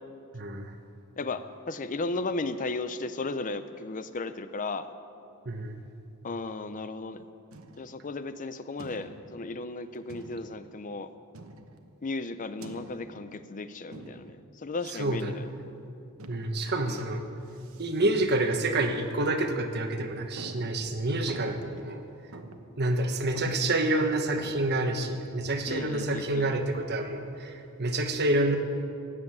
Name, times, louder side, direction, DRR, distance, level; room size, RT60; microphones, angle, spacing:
voice 1, 0.3-0.7 5.4-5.8 15.0-15.4 16.3-17.3 17.8-22.0 22.8-28.6, right 2 dB, 50° right, 5 dB, 1.3 m, -28 dB
voice 2, 1.2-4.9 6.2-7.2 7.7-11.1 12.0-15.4 16.9-17.0 25.7-26.5, left 3 dB, 40° left, 12 dB, 0.5 m, -35 dB
sound 1, 7.5-8.1 8.8-9.4 10.1-10.7 11.3-11.9 12.6-13.3 13.9-14.5 15.1-15.5 16.2-17.1 17.5-18.1 18.4-18.5 19.1-19.3 19.7-19.8 20.4-21.9 22.3-22.8 23.1-23.2 23.3-24.7, right 2 dB, 70° right, 1.1 m, -46 dB
16.5 x 9.6 x 8.1 m, 2.7 s
head